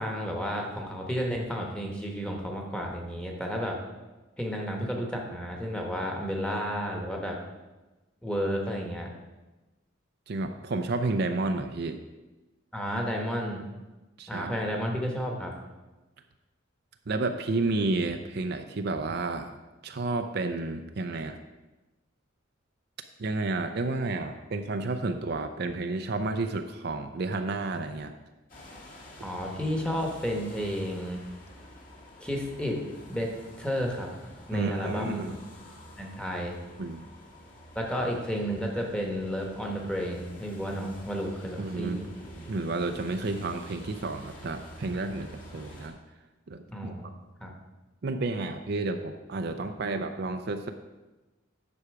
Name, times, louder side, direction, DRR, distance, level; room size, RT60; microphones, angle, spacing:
voice 1, 0.0-3.8 4.4-7.4 8.2-9.1 12.7-13.6 14.3-15.5 29.2-31.2 32.2-32.8 33.1-33.3 33.6-34.1 34.5-35.2 36.0-36.6 37.7-42.1 46.7-47.1 47.4-47.5, equal, 5° left, 0 dB, 1.2 m, -32 dB
voice 2, 10.3-12.0 14.2-14.5 17.1-19.5 19.8-21.4 23.2-28.1 34.5-35.4 36.8-37.1 41.6-42.0 42.5-46.0 46.5-46.9 48.0-50.7, right 3 dB, 55° right, 7 dB, 0.5 m, -31 dB
sound 1, 28.5-45.9, equal, 45° left, 1.9 m, -48 dB
9.6 x 6.2 x 4.8 m, 1.1 s
head